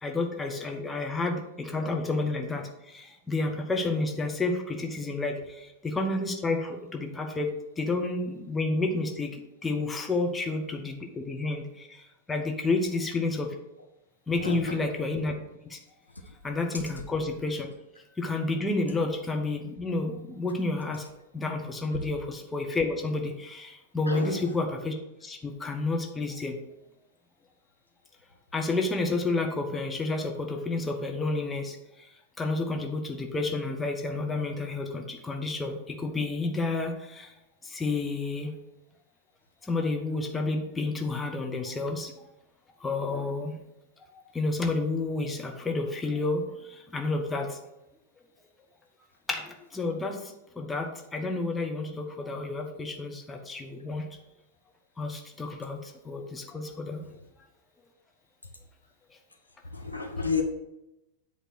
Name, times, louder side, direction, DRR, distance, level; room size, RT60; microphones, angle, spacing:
voice 1, 0.0-7.5 7.8-9.3 9.6-12.0 12.3-13.5 14.3-15.3 15.7-15.8 16.4-17.7 18.2-21.1 21.3-24.9 25.2-26.6 28.5-31.8 32.4-37.3 37.6-38.5 39.7-42.1 42.8-43.5 44.3-47.6 49.3-50.2 50.5-54.0 55.0-57.0, left 3 dB, 10° left, 2 dB, 1.0 m, -30 dB
voice 2, 14.4-14.8 16.3-16.4 16.7-17.0 24.1-24.5 57.0-57.2 59.6-60.4, left 5 dB, 85° left, 3 dB, 0.8 m, -32 dB
8.1 x 3.2 x 6.0 m, 0.91 s
figure-of-eight pair, 90°, 0 cm